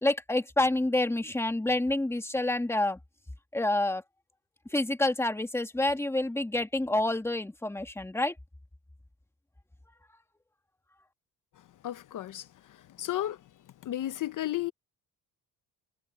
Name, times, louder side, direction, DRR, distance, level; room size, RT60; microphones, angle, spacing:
voice 1, 0.0-3.0 3.5-4.0 4.7-8.3, left 1 dB, 5° left, 1.8 m, -28 dB
voice 2, 11.8-12.5 13.0-13.4 13.8-14.7, left 13 dB, 60° left, 0.9 m, -32 dB
cardioid pair, 115°, 35 cm